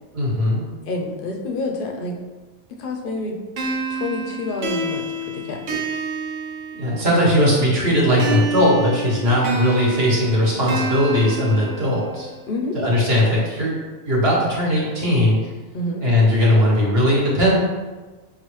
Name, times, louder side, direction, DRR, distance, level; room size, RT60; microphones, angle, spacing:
voice 1, 0.1-0.6 6.7-12.3 12.7-13.7 14.0-15.4 16.0-17.5, left 1 dB, 55° right, -5 dB, 1.3 m, -18 dB
voice 2, 0.9-2.1 2.8-3.4 3.9-5.8 12.5-12.8 15.7-16.0, left 2 dB, 55° left, 1 dB, 0.6 m, -28 dB
sound 1, 3.6-7.2 8.2-12.2, right 3 dB, 75° right, 1.0 m, -28 dB
5.7 x 2.4 x 3.0 m, 1.3 s
omnidirectional pair, 1.3 m